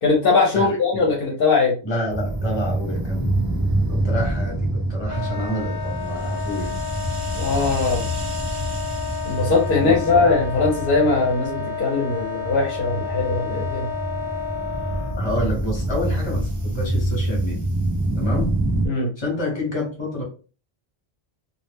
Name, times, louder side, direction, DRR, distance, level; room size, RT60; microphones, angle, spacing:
voice 1, 0.0-1.7 7.3-8.0 9.2-13.9 18.9-19.1, left 4 dB, 65° left, -2 dB, 0.8 m, -20 dB
voice 2, 0.5-1.2 1.8-3.5 3.9-6.8 9.5-10.3 15.2-17.6 18.1-18.6 19.2-20.2, equal, 30° left, -1 dB, 1.0 m, -28 dB
sound 1, 2.1-18.9, right 1 dB, 40° right, 0.3 m, -26 dB
Wind instrument woodwind instrument, 5.1-15.2, left 5 dB, 65° right, 1.1 m, -31 dB
2.3 x 2.0 x 3.3 m, 0.36 s
omnidirectional pair, 1.0 m